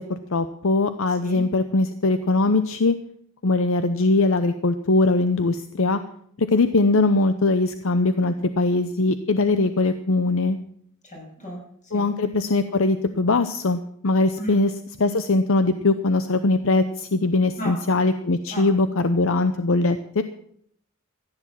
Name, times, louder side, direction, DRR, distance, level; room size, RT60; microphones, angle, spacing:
voice 1, 0.0-3.0 3.4-6.0 6.5-10.6 11.9-14.7 15.0-20.2, left 2 dB, 65° left, 11 dB, 0.8 m, -21 dB
voice 2, 1.1-1.4 11.0-12.1 14.4-14.7 17.6-17.8 18.5-18.7, equal, 35° left, -1 dB, 6.4 m, -35 dB
14.5 x 9.8 x 7.4 m, 0.66 s
head